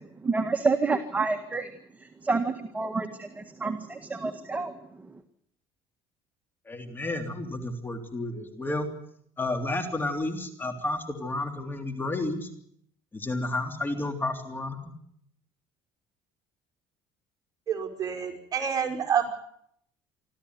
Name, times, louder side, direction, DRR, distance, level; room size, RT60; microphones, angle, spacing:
voice 1, 0.0-1.7 2.0-5.2, right 4 dB, 15° right, 6 dB, 1.7 m, -29 dB
voice 2, 6.7-8.9 9.4-12.5 13.1-14.9, left 2 dB, 20° left, 6 dB, 3.3 m, -31 dB
voice 3, 17.7-19.3, right 7 dB, 35° right, 2 dB, 5.3 m, -28 dB
26.0 x 14.0 x 9.6 m, 0.69 s
cardioid pair, 115°, 11 cm